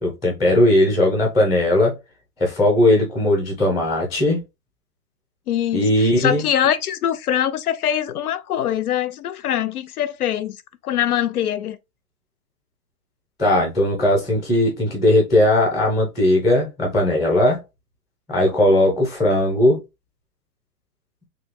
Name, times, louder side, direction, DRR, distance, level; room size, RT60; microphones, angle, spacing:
voice 1, 0.0-2.0 2.4-4.4 5.7-6.4 13.4-17.6 18.3-19.8, left 1 dB, 5° left, 0.6 m, -18 dB
voice 2, 5.5-10.6 10.8-11.8, left 10 dB, 70° left, 0.6 m, -23 dB
3.2 x 2.8 x 3.4 m
hypercardioid pair, 170°, 47 cm